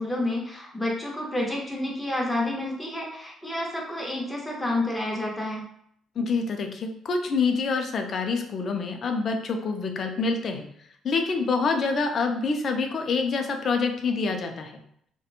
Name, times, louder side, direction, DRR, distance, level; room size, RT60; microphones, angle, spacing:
voice 1, 0.0-5.6, left 1 dB, 5° left, -2 dB, 0.7 m, -29 dB
voice 2, 6.2-10.7 11.0-14.7, left 4 dB, 45° left, 4 dB, 0.4 m, -26 dB
2.9 x 2.1 x 2.4 m, 0.69 s
cardioid pair, 120°, 0 cm